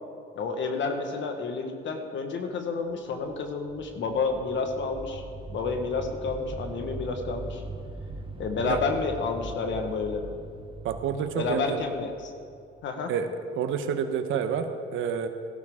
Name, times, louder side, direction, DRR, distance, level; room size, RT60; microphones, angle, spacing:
voice 1, 0.3-5.2 5.5-7.6 8.4-10.3 11.4-12.3 12.8-13.1, left 4 dB, 70° left, 5 dB, 1.3 m, -30 dB
sound 1, 3.0-12.9, right 3 dB, 25° right, 0.7 m, -41 dB
voice 2, 10.8-11.8 13.1-13.3 13.5-15.3, right 7 dB, 85° right, 7 dB, 0.9 m, -28 dB
16.0 x 12.0 x 3.6 m, 2.4 s
cardioid pair, 90°, 20 cm